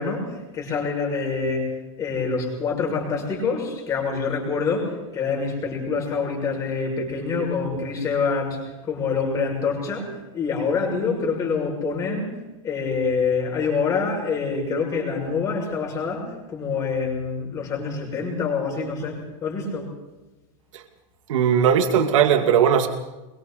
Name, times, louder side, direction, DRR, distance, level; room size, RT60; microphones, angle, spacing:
voice 1, 0.0-12.3 12.6-19.9, left 5 dB, 20° left, 0 dB, 6.6 m, -26 dB
voice 2, 21.3-22.9, right 8 dB, 70° right, 6 dB, 2.4 m, -18 dB
27.0 x 23.5 x 4.2 m, 1.1 s
supercardioid pair, 170°, 17 cm